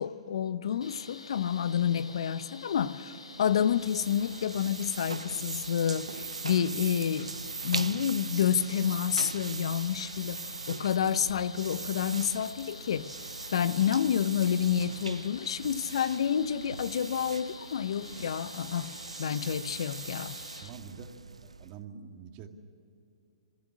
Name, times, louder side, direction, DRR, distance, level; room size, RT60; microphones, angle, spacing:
voice 1, 0.0-7.3 7.6-13.1 13.5-18.9 19.2-20.4, left 8 dB, 65° left, 0.7 m, -29 dB
sound 1, 0.8-20.7, left 3 dB, 85° left, 2.0 m, -48 dB
sound 2, 3.3-21.8, right 4 dB, 90° right, 0.5 m, -41 dB
voice 2, 20.6-22.5, right 7 dB, 35° right, 2.0 m, -47 dB
22.0 x 15.0 x 9.8 m
hypercardioid pair, 125°, 3 cm